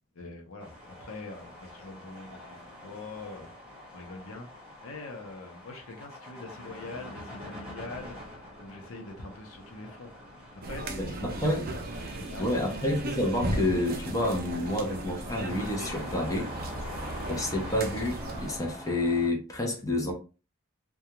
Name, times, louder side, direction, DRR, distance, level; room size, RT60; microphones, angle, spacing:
voice 1, 0.1-3.5 3.9-10.1 10.6-12.9, left 3 dB, 70° left, 0.7 m, -44 dB
sound 1, 0.6-19.3, left 1 dB, 5° right, 1.2 m, -45 dB
sound 2, 10.6-18.6, right 2 dB, 45° right, 0.5 m, -36 dB
voice 2, 11.0-11.6 12.4-16.5 17.3-20.1, left 1 dB, 15° left, 0.6 m, -29 dB
2.4 x 2.2 x 2.8 m
head